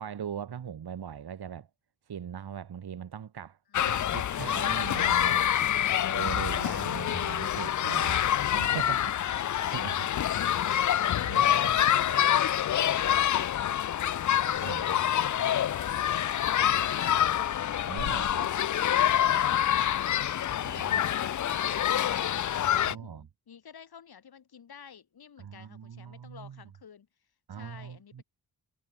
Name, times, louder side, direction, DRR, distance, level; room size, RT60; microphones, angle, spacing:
voice 1, 0.0-1.7 2.1-3.6 3.8-5.5 6.1-8.2 8.5-9.1 9.7-10.0 11.2-11.8 14.6-15.0 16.6-16.7 17.8-18.5 20.6-21.0 22.8-23.2 25.4-26.6 27.5-28.2, right 8 dB, 80° right, 4.8 m, -40 dB
sound 1, 3.7-22.9, left 11 dB, 50° left, 0.5 m, -26 dB
voice 2, 9.8-10.9 11.4-17.4 17.9-22.3 22.6-27.1 27.5-28.2, left 7 dB, 75° left, 7.9 m, -50 dB
wide cardioid pair, 130°, 38 cm